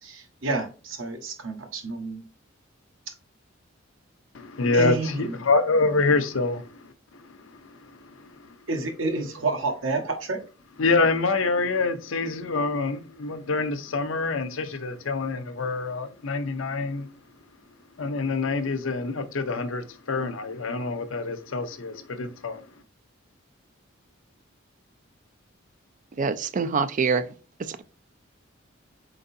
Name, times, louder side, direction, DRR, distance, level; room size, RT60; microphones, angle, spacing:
voice 1, 0.0-2.2 4.7-5.2 8.7-10.4, right 3 dB, 80° right, 1.2 m, -29 dB
voice 2, 4.3-8.5 10.8-17.1 18.0-22.6, left 3 dB, 75° left, 0.6 m, -26 dB
voice 3, 26.2-27.3 27.7-27.8, right 5 dB, 40° right, 0.4 m, -25 dB
4.5 x 3.9 x 2.6 m
head